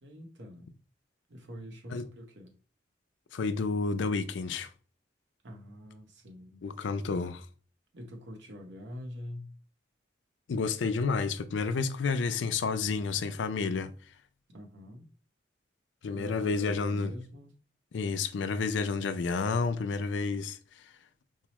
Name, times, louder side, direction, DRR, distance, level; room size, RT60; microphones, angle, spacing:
voice 1, 0.0-0.7 1.3-2.5 5.4-6.7 7.9-9.5 14.5-15.1 16.1-17.5, left 1 dB, 75° right, 0.9 m, -45 dB
voice 2, 3.3-4.7 6.6-7.5 10.5-13.9 16.0-17.1 17.9-20.6, left 4 dB, 85° left, 0.4 m, -30 dB
4.6 x 2.0 x 3.0 m
head